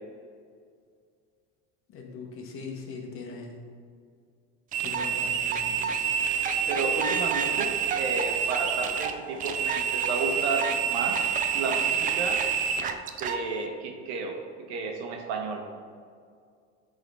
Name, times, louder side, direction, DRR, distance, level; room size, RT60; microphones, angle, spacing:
voice 1, 1.9-3.6 4.8-6.0, left 4 dB, 40° left, 0 dB, 1.3 m, -41 dB
sound 1, 4.7-13.4, right 7 dB, 25° right, 0.4 m, -27 dB
voice 2, 6.7-11.2 11.5-12.4 13.2-15.6, right 4 dB, 85° right, 3 dB, 1.2 m, -32 dB
10.5 x 3.9 x 3.4 m, 2.2 s
cardioid pair, 140°, 32 cm